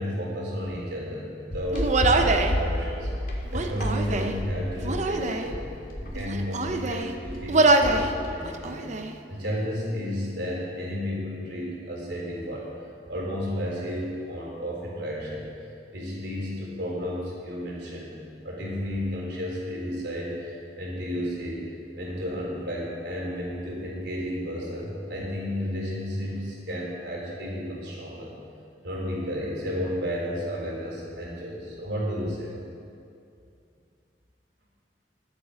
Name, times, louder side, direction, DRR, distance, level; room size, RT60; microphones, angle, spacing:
voice 1, 0.0-3.1 3.5-5.7 6.0-9.0 9.3-12.7 13.1-15.4 15.9-18.2 18.4-21.6 21.9-28.4 28.8-32.5, equal, 70° right, -3 dB, 3.9 m, -32 dB
sound 1, 1.5-8.3, equal, 55° left, 2.2 m, -31 dB
Human voice, 1.7-2.6 3.5-4.4 4.8-5.5 6.2-7.1 7.5-8.1 8.4-9.1, right 2 dB, 45° right, 0.7 m, -24 dB
20.5 x 8.4 x 5.1 m, 2.5 s
head